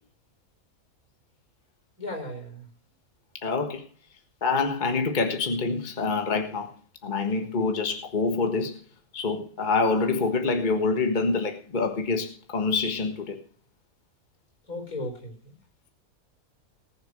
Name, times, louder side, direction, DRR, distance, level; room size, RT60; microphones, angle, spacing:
voice 1, 2.0-2.7 14.7-15.6, left 1 dB, 90° left, 4 dB, 5.2 m, -36 dB
voice 2, 3.4-3.8 4.4-6.7 7.0-8.7 9.1-13.4, left 4 dB, 35° left, 5 dB, 1.6 m, -26 dB
19.5 x 6.7 x 6.5 m, 0.39 s
omnidirectional pair, 1.5 m